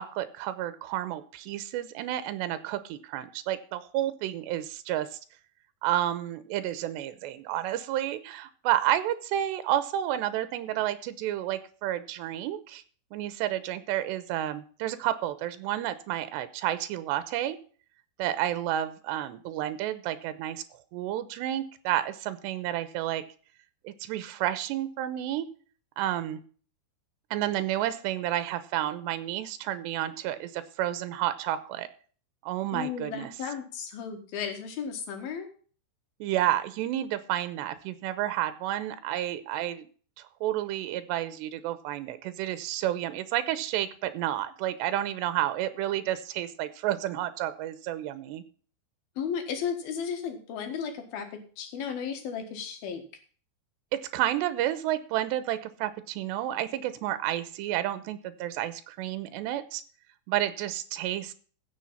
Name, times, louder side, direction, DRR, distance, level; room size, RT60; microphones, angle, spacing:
voice 1, 0.0-5.2 5.8-12.8 13.1-17.6 18.2-20.6 20.9-23.2 23.8-25.5 26.0-26.4 27.3-31.9 32.4-33.3 36.2-39.9 40.2-48.4 53.9-59.8 60.3-61.3, right 13 dB, 85° right, 13 dB, 3.0 m, -30 dB
voice 2, 32.7-35.5 49.2-53.0, left 7 dB, 65° left, 6 dB, 3.2 m, -34 dB
15.0 x 6.4 x 5.6 m, 0.42 s
omnidirectional pair, 5.0 m